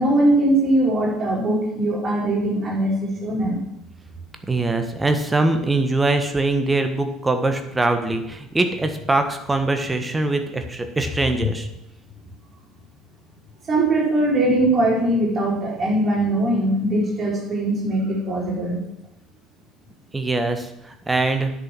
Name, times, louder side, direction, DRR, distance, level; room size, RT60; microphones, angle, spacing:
voice 1, 0.0-3.6 13.7-18.8, right 1 dB, 30° right, -3 dB, 4.4 m, -21 dB
voice 2, 4.5-11.7 20.1-20.7 21.1-21.5, right 2 dB, 15° right, 6 dB, 1.5 m, -22 dB
10.0 x 6.8 x 6.3 m, 0.84 s
figure-of-eight pair, 60°, 0 cm